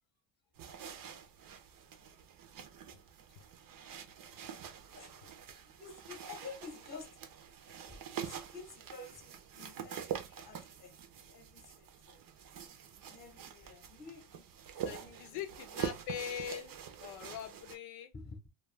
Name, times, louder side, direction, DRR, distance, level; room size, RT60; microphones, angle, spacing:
sound 1, 0.5-17.8, right 8 dB, 45° right, 0.6 m, -45 dB
voice 1, 5.0-5.4 5.8-7.3 7.9-12.3 12.8-15.6 18.1-18.5, left 4 dB, 20° left, 0.9 m, -51 dB
voice 2, 14.8-18.1, left 9 dB, 80° left, 0.7 m, -42 dB
2.4 x 2.3 x 3.2 m
cardioid pair, 115°, 48 cm